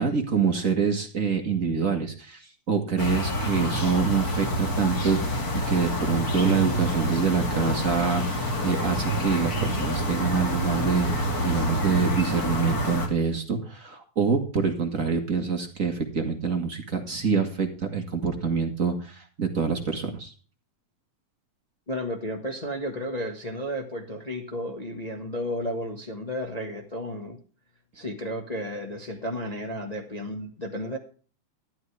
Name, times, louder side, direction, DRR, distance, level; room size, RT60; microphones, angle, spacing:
voice 1, 0.0-20.3, right 5 dB, 35° right, 4 dB, 1.5 m, -26 dB
sound 1, 3.0-13.1, equal, 30° left, 2.4 m, -27 dB
voice 2, 21.9-27.4 27.9-31.0, equal, 90° left, 2 dB, 0.3 m, -33 dB
12.0 x 12.0 x 3.3 m, 0.38 s
omnidirectional pair, 3.5 m